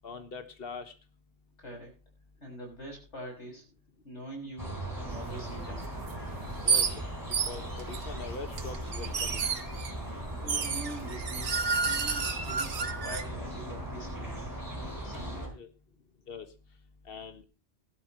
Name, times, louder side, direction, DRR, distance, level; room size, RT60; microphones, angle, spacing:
voice 1, 0.0-0.9 6.6-6.9 7.5-9.4 15.5-15.7 16.3-16.5 17.1-17.4, left 4 dB, 55° left, 9 dB, 1.7 m, -42 dB
voice 2, 1.6-1.9 2.4-3.6 4.0-5.9 10.4-11.5 11.8-14.5 15.0-15.5, right 1 dB, 75° left, 1 dB, 6.0 m, -44 dB
sound 1, 4.6-15.5, right 1 dB, 15° right, 4.2 m, -38 dB
sound 2, 6.1-6.2 6.7-6.9 7.3-8.0 8.6-9.9 10.5-13.2, right 5 dB, 75° right, 1.6 m, -30 dB
18.0 x 12.5 x 3.0 m, 0.30 s
omnidirectional pair, 1.2 m